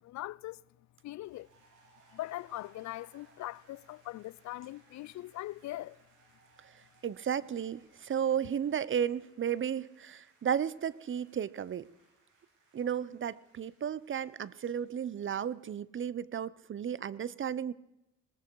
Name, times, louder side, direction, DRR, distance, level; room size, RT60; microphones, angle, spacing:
voice 1, 0.0-0.6 1.0-1.5 2.1-6.0, left 16 dB, 70° left, 0.5 m, -41 dB
sound 1, 1.2-15.8, right 3 dB, 80° right, 6.3 m, -67 dB
voice 2, 7.0-11.9 12.7-17.7, right 8 dB, 40° right, 0.7 m, -33 dB
19.5 x 15.0 x 4.6 m
cardioid pair, 90°, 30 cm